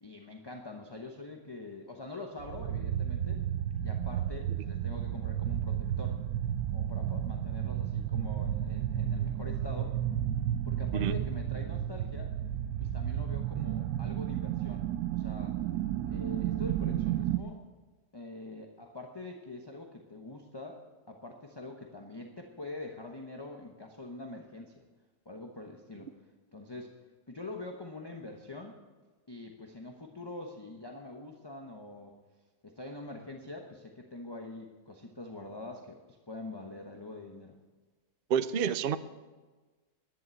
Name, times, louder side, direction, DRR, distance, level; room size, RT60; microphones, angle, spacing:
voice 1, 0.0-3.4 3.8-6.2 6.7-10.0 10.6-12.4 12.8-15.6 16.1-17.6 18.1-24.8 25.2-26.1 26.5-27.0 27.3-28.7 29.3-32.1 32.6-37.5, left 2 dB, 20° left, 2 dB, 0.9 m, -44 dB
sound 1, 2.4-17.4, right 11 dB, 85° right, 1.2 m, -32 dB
voice 2, 38.3-39.0, right 8 dB, 65° right, 13 dB, 0.5 m, -28 dB
11.0 x 11.0 x 8.3 m, 1.3 s
omnidirectional pair, 1.7 m